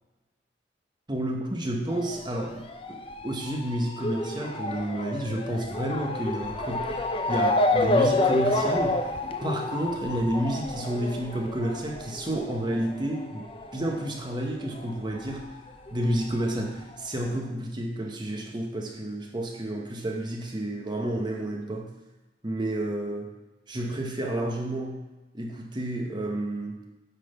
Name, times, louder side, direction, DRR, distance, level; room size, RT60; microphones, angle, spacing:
voice 1, 1.1-9.1 9.4-15.4 15.9-21.9 22.4-23.3 23.7-25.0 25.3-26.8, right 1 dB, 25° right, 1 dB, 1.0 m, -30 dB
Motor vehicle (road) / Siren, 1.9-14.9 15.2-16.4 17.0-17.1 17.3-17.4, left 2 dB, 30° left, 0.5 m, -29 dB
8.2 x 4.0 x 5.4 m, 1.1 s
head